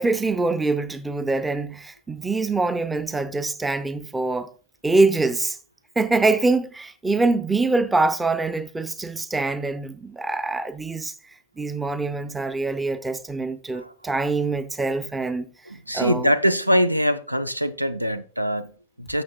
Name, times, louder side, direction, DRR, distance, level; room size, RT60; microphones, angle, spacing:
voice 1, 0.0-4.5 4.8-5.6 6.0-11.1 11.6-15.5 15.9-16.3, right 3 dB, 10° right, 0.5 m, -24 dB
voice 2, 15.9-19.2, equal, 85° right, 0.4 m, -23 dB
12.5 x 6.4 x 2.2 m
figure-of-eight pair, 90°, 0 cm